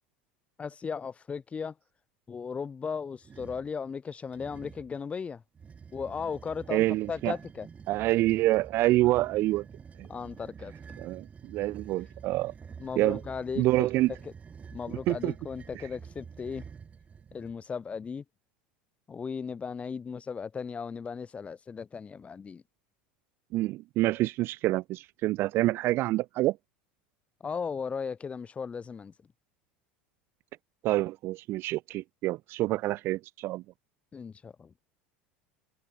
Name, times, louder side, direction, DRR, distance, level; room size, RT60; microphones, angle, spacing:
voice 1, 0.6-1.7 2.3-5.4 5.9-7.7 10.1-10.7 12.8-13.9 14.2-14.3 14.7-16.6 17.3-18.2 19.1-22.6 27.4-29.1 34.1-34.7, left 6 dB, 25° left, 3.2 m, -36 dB
sound 1, 3.2-3.7 4.3-5.0 5.5-17.6, right 6 dB, 25° right, 6.6 m, -48 dB
voice 2, 6.7-7.3 7.9-9.6 10.0-10.1 11.0-12.5 13.0-13.2 13.6-14.1 15.1-15.3 23.5-26.6 30.8-33.6, right 17 dB, 50° right, 0.7 m, -27 dB
hypercardioid pair, 80°, 5 cm